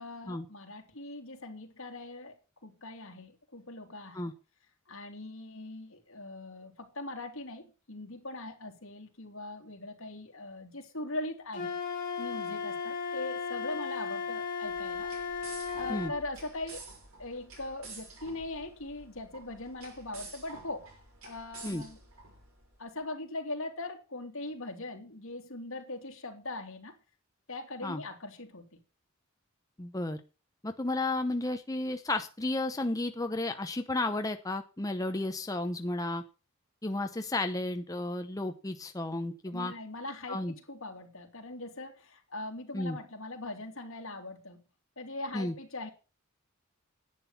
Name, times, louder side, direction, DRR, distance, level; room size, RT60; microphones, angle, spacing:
voice 1, 0.0-2.3 2.6-4.2 4.9-11.8 12.2-15.1 15.7-16.8 17.2-20.9 21.2-22.0 22.8-26.9 27.5-28.6 39.5-44.6 45.0-45.9, left 2 dB, 70° left, 3.0 m, -41 dB
Wind instrument woodwind instrument, 11.5-16.2, left 5 dB, 40° left, 2.8 m, -35 dB
sound 1, 14.6-22.8, right 3 dB, 85° right, 6.0 m, -50 dB
voice 2, 29.8-30.2 30.6-36.2 36.8-39.7 40.3-40.5 42.7-43.0 45.3-45.5, left 2 dB, 15° left, 0.8 m, -33 dB
10.5 x 9.1 x 5.7 m
head